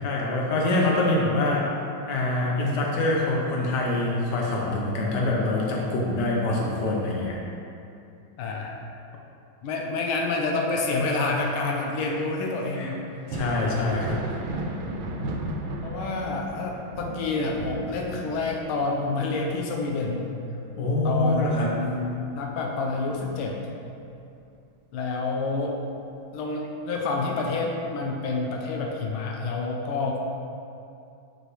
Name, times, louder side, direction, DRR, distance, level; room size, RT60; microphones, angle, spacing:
voice 1, 0.0-1.7 2.1-7.4 12.7-14.2 20.8-21.7, left 2 dB, 60° left, -3 dB, 1.5 m, -25 dB
voice 2, 8.4-8.8 9.6-13.0 15.8-20.3 21.0-23.6 24.9-25.8 26.3-30.2, left 3 dB, 85° left, 0 dB, 1.5 m, -28 dB
Thunder, 13.1-22.5 22.8-24.1 25.6-25.7 26.5-26.7, right 1 dB, 80° right, 1.4 m, -35 dB
8.6 x 4.8 x 3.2 m, 2.6 s
omnidirectional pair, 2.2 m